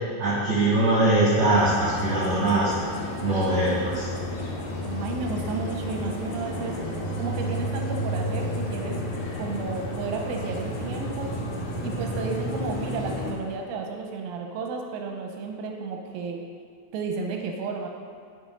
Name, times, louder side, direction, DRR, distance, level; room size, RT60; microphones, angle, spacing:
voice 1, 0.2-2.7 3.2-4.1, right 2 dB, 60° right, -8 dB, 1.2 m, -22 dB
sound 1, 1.5-13.3, equal, 75° left, 2.7 m, -31 dB
voice 2, 4.8-6.8 7.2-9.0 9.3-11.3 11.8-16.4 16.9-17.9, right 4 dB, 90° right, 2 dB, 2.4 m, -32 dB
8.2 x 4.4 x 5.2 m, 2.1 s
omnidirectional pair, 4.1 m